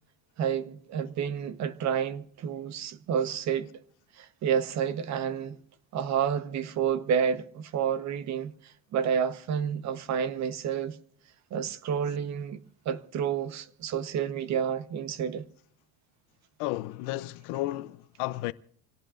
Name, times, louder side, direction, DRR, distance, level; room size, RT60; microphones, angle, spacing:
voice 1, 0.4-3.7 4.2-5.6 5.9-11.0 11.5-15.5, right 8 dB, 40° right, 1.0 m, -30 dB
voice 2, 16.6-18.5, left 17 dB, 75° left, 0.7 m, -33 dB
26.5 x 17.5 x 2.5 m
cardioid pair, 150°, 41 cm